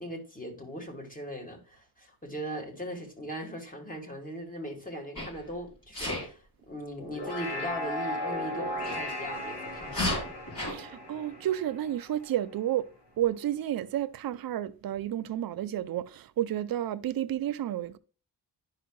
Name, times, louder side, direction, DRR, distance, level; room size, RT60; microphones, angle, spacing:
voice 1, 0.0-10.1, equal, 20° left, 1.5 m, -39 dB
Sneeze, 5.2-5.4 5.9-6.3 8.8-9.0 9.8-10.7, left 1 dB, 50° left, 3.3 m, -31 dB
sound 1, 7.0-12.5, left 1 dB, 70° left, 2.7 m, -36 dB
voice 2, 10.6-12.9 13.2-18.0, right 12 dB, 55° right, 0.5 m, -31 dB
10.0 x 5.7 x 2.2 m
wide cardioid pair, 155°, 42 cm